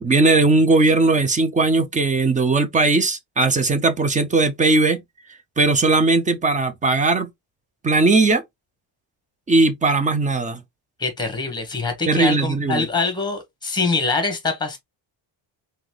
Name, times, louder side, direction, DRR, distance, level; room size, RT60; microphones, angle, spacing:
voice 1, 0.0-5.0 5.6-7.3 7.8-8.4 9.5-10.6 12.1-12.9, right 3 dB, 20° right, 0.3 m, -18 dB
voice 2, 11.0-14.8, left 4 dB, 10° left, 1.2 m, -24 dB
4.0 x 3.2 x 3.0 m
cardioid pair, 170°, 47 cm